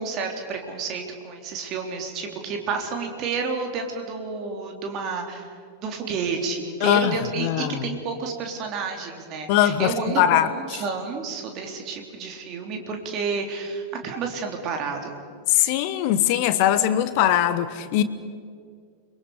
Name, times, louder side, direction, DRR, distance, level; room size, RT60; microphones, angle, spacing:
voice 1, 0.0-5.5 5.8-15.2, right 4 dB, 35° right, 3.6 m, -30 dB
voice 2, 6.8-7.9 9.5-10.5 15.5-18.0, left 11 dB, 45° left, 1.3 m, -21 dB
29.5 x 23.0 x 5.1 m
figure-of-eight pair, 90°, 0 cm